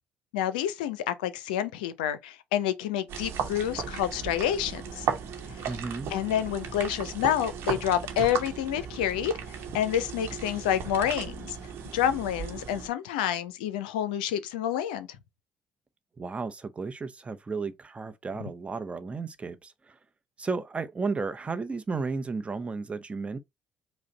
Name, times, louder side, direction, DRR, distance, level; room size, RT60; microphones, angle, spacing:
voice 1, 0.3-5.1 6.1-9.3 9.7-11.6 11.9-15.1, left 10 dB, 75° left, 0.4 m, -28 dB
sound 1, 3.1-12.9, right 7 dB, 60° right, 1.0 m, -36 dB
voice 2, 5.7-6.1 16.2-20.0 20.4-23.4, right 4 dB, 25° right, 0.7 m, -33 dB
5.0 x 2.2 x 3.9 m
hypercardioid pair, 55°, 5 cm